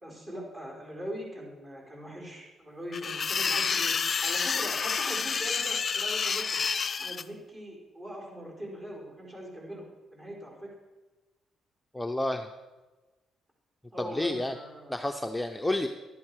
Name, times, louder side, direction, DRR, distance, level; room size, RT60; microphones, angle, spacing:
voice 1, 0.0-6.6 7.0-9.8 10.1-10.7 13.9-15.0, equal, 30° right, -2 dB, 4.7 m, -41 dB
sound 1, 2.9-7.2, left 5 dB, 40° left, 0.5 m, -29 dB
voice 2, 11.9-12.5 14.1-14.5 14.9-15.9, left 1 dB, 5° left, 5 dB, 0.7 m, -30 dB
12.0 x 10.5 x 4.8 m, 1.2 s
cardioid pair, 90°, 0 cm